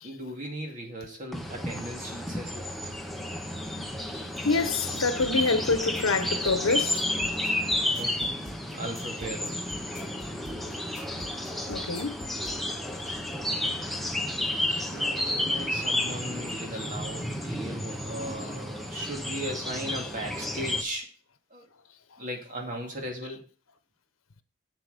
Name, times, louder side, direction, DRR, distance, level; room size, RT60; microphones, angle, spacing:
voice 1, 0.0-2.9 8.0-8.3 8.7-9.6 14.9-21.1 21.5-21.7 22.2-23.4, right 1 dB, 40° right, 2.4 m, -37 dB
sound 1, 1.3-20.8, left 1 dB, ahead, 0.9 m, -31 dB
voice 2, 4.1-7.1 11.7-12.2 14.7-14.9 16.7-16.8, left 4 dB, 85° left, 0.9 m, -27 dB
sound 2, 4.9-12.6, left 1 dB, 35° left, 1.9 m, -45 dB
8.0 x 7.7 x 5.2 m
head